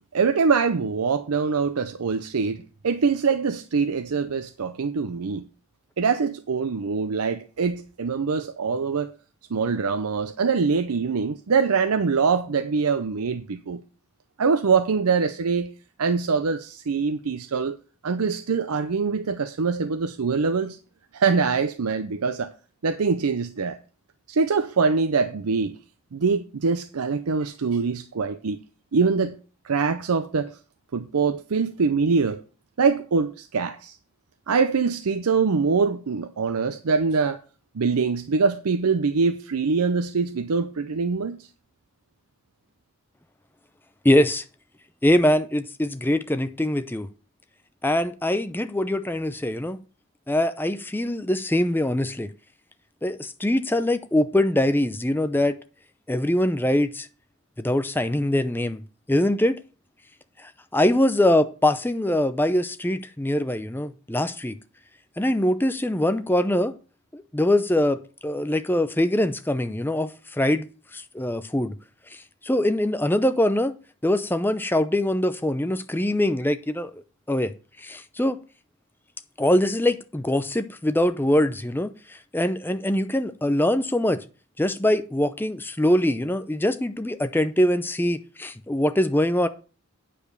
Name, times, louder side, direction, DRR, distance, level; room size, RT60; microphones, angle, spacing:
voice 1, 0.1-2.6 2.8-5.4 6.0-9.1 9.5-13.8 14.4-15.7 16.0-17.8 18.0-20.8 21.1-22.5 22.8-23.8 24.3-25.8 26.1-28.6 28.9-29.4 29.6-30.6 30.9-32.4 32.8-34.0 34.5-37.4 37.7-41.4, right 5 dB, 85° right, 0.6 m, -23 dB
voice 2, 44.0-44.4 45.0-47.1 47.8-49.8 50.3-52.3 53.0-55.6 56.1-57.1 57.6-58.8 59.1-59.6 60.4-64.6 65.2-66.7 67.1-70.7 70.9-71.7 72.1-73.7 74.0-77.0 77.3-77.5 77.8-78.4 79.4-84.2 84.6-89.5, left 1 dB, 10° left, 0.5 m, -23 dB
8.9 x 5.1 x 6.6 m
head